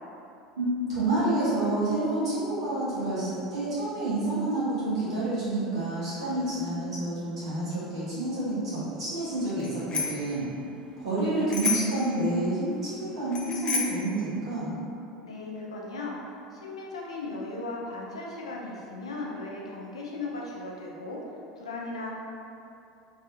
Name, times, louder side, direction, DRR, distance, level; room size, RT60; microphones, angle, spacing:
voice 1, 0.6-10.4 11.0-14.7, right 2 dB, 85° right, -11 dB, 1.4 m, -29 dB
Bicycle bell, 9.6-10.3 11.5-12.1 13.3-14.1, left 5 dB, 30° left, 0.5 m, -30 dB
voice 2, 15.2-21.2 21.6-22.1, left 2 dB, 90° left, -3 dB, 0.5 m, -37 dB
3.1 x 2.9 x 2.4 m, 2.6 s
hypercardioid pair, 80°, 3 cm